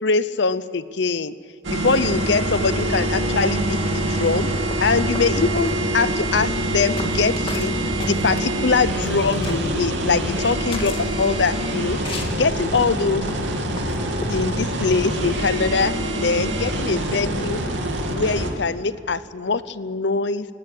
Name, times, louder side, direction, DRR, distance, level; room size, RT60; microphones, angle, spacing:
voice 1, 0.0-1.3 1.7-4.5 4.8-12.0 12.3-13.2 14.3-17.6 18.1-20.5, left 4 dB, 65° left, 15 dB, 0.8 m, -23 dB
sound 1, 1.6-18.5, right 1 dB, 80° right, 2.9 m, -25 dB
sound 2, 4.5-14.4, left 2 dB, 30° left, 2.3 m, -37 dB
19.0 x 16.5 x 8.5 m, 2.4 s
head